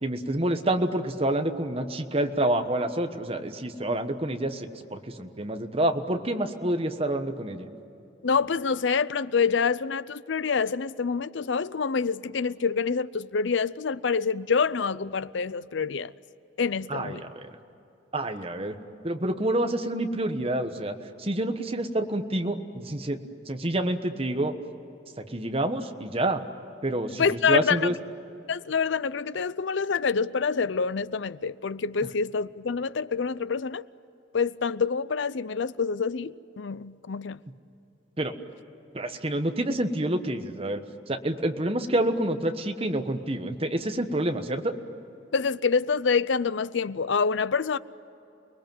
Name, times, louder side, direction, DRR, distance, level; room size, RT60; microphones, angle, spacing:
voice 1, 0.0-7.7 16.9-17.5 18.1-18.8 19.0-24.5 25.2-26.4 26.8-27.9 38.2-38.3 38.9-40.8 41.1-44.7, right 1 dB, 30° right, 1.3 m, -28 dB
voice 2, 8.2-16.1 16.6-17.2 27.2-27.9 28.5-33.9 34.3-37.4 45.3-47.8, left 5 dB, 70° left, 0.6 m, -26 dB
29.5 x 20.5 x 9.2 m
head